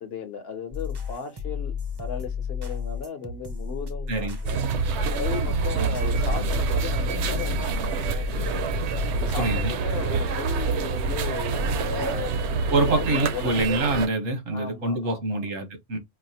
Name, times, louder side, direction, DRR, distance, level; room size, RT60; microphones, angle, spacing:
voice 1, 0.0-1.7 2.0-8.7 9.1-12.4 12.8-13.5 14.5-15.4, left 6 dB, 60° left, 1.0 m, -36 dB
sound 1, 0.7-10.0, left 6 dB, 35° right, 0.4 m, -32 dB
voice 2, 4.1-4.4 9.4-9.7 12.7-16.0, right 2 dB, 90° right, 1.4 m, -25 dB
sound 2, 4.4-14.1, right 5 dB, 70° right, 0.8 m, -27 dB
4.6 x 2.1 x 2.7 m
omnidirectional pair, 1.3 m